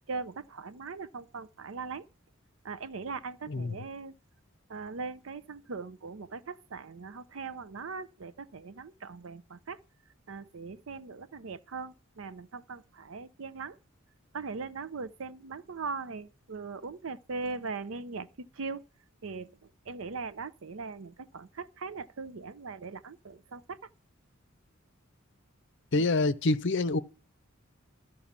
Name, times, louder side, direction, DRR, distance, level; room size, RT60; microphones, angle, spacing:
voice 1, 0.1-2.1 2.6-4.1 4.7-9.8 10.3-13.8 14.3-18.8 19.2-23.8 25.9-26.1, right 4 dB, 75° right, 0.6 m, -40 dB
voice 2, 25.9-27.0, left 2 dB, 60° left, 0.6 m, -26 dB
12.5 x 4.6 x 7.3 m
head